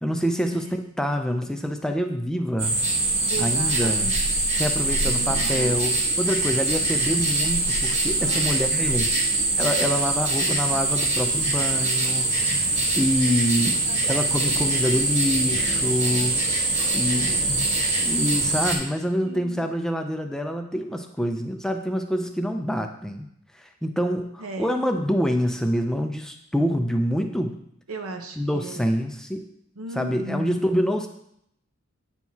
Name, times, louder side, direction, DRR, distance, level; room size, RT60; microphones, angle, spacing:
voice 1, 0.0-2.8 3.4-4.1 4.6-9.1 9.6-12.3 12.9-16.4 16.9-17.4 17.9-23.3 23.5-27.6 28.4-29.5 30.0-31.1, equal, 5° left, 5 dB, 0.4 m, -26 dB
sound 1, 2.6-18.8, right 2 dB, 30° right, 1.2 m, -23 dB
voice 2, 3.3-4.5 5.0-5.9 8.2-9.5 13.9-14.7 17.0-17.6 19.2-19.7 24.4-24.7 27.9-29.0 29.8-30.6, right 2 dB, 85° right, 5 dB, 0.8 m, -37 dB
9.0 x 4.6 x 2.8 m, 0.73 s
head